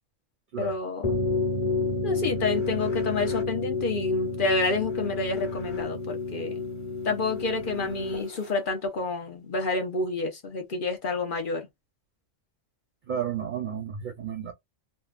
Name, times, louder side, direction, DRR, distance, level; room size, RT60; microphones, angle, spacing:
voice 1, 0.6-1.2 2.0-6.6 7.0-11.7, left 3 dB, 50° left, 0.9 m, -29 dB
sound 1, 1.0-8.5, left 3 dB, 30° left, 1.3 m, -30 dB
voice 2, 13.1-14.5, right 8 dB, 50° right, 0.7 m, -32 dB
3.6 x 2.2 x 2.4 m
omnidirectional pair, 1.3 m